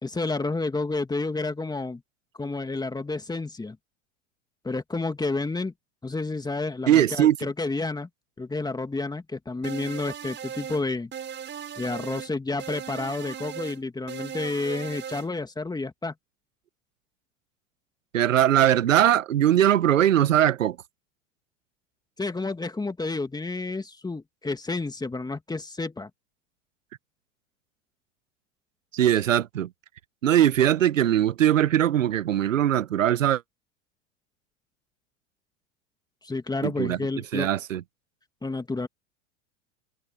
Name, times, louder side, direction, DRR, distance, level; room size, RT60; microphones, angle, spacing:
voice 1, 0.0-2.0 2.4-3.8 4.6-5.7 6.0-8.1 8.4-11.1 11.8-16.1 22.2-26.1 36.2-37.5 38.4-38.9, left 3 dB, 10° left, 2.4 m, -30 dB
voice 2, 6.9-7.4 18.1-20.8 28.9-29.7 30.2-33.4 36.6-37.0 37.3-37.8, right 11 dB, 85° right, 1.1 m, -21 dB
sound 1, 9.6-10.8 11.1-12.3 12.6-13.8 14.1-15.3, right 8 dB, 30° right, 5.2 m, -37 dB
hypercardioid pair, 95°, 38 cm